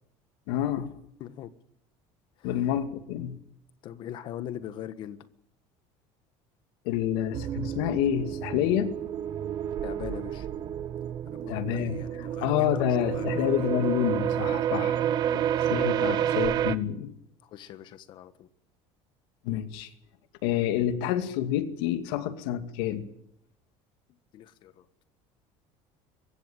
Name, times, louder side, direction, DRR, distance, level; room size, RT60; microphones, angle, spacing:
voice 1, 0.5-0.9 2.4-3.4 6.8-8.9 11.5-15.0 15.3-15.4 15.7-17.1 19.4-19.9 20.4-23.1, left 11 dB, 80° left, 2.4 m, -28 dB
voice 2, 1.2-1.5 2.4-2.7 3.8-5.3 9.8-10.5 11.3-13.8 17.4-18.5 24.3-24.9, left 11 dB, 40° left, 1.5 m, -42 dB
sound 1, 7.3-16.8, right 10 dB, 35° right, 0.9 m, -29 dB
23.5 x 14.5 x 9.1 m
cardioid pair, 180°, 13 cm